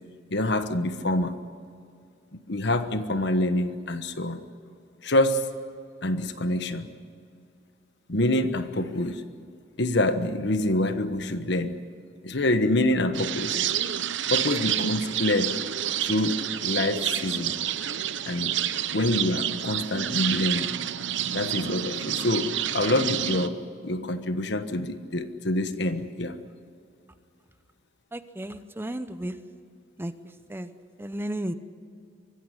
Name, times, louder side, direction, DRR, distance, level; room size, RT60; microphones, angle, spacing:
voice 1, 0.3-1.4 2.5-4.4 5.0-5.5 6.0-6.9 8.1-9.2 9.8-11.8 12.2-13.6 14.3-15.6 16.0-17.5 18.3-18.6 18.9-20.7 21.3-26.4, left 1 dB, 65° left, 10 dB, 1.3 m, -26 dB
sound 1, 13.1-23.5, right 10 dB, 70° right, 0.9 m, -29 dB
voice 2, 28.1-29.3 30.0-30.1 30.5-30.7 31.0-31.5, right 1 dB, 10° right, 11 dB, 0.8 m, -33 dB
24.5 x 15.0 x 9.8 m, 2.4 s
head